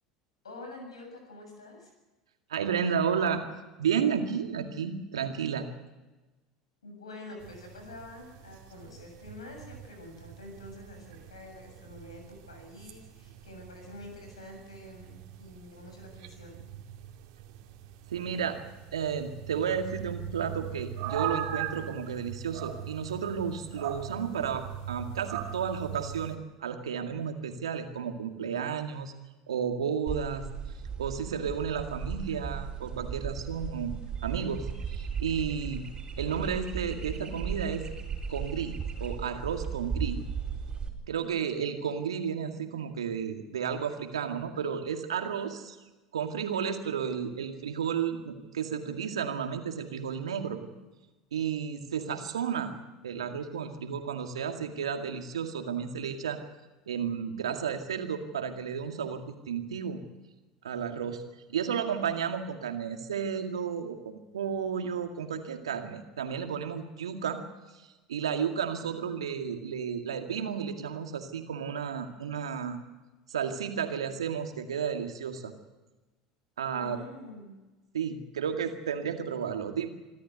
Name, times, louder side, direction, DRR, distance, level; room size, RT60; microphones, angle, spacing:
voice 1, 0.4-1.9 6.8-16.6 76.7-77.6, left 2 dB, 80° left, 3 dB, 6.9 m, -47 dB
voice 2, 2.5-3.4 3.8-5.7 18.1-18.6 18.9-29.1 29.5-30.5 31.0-33.9 34.2-35.8 36.2-37.8 38.3-38.8 39.0-40.2 41.1-45.8 46.1-50.6 51.3-52.7 53.0-56.4 56.9-60.0 60.6-61.2 61.5-67.4 67.7-72.8 73.3-75.5 76.6-77.0 77.9-80.0, right 7 dB, 80° right, 6 dB, 2.1 m, -32 dB
sound 1, 7.4-26.4, right 9 dB, 60° right, 2.4 m, -41 dB
sound 2, 30.1-40.9, right 6 dB, 30° right, 4.3 m, -36 dB
26.0 x 13.0 x 8.1 m, 1.1 s
figure-of-eight pair, 75°, 3 cm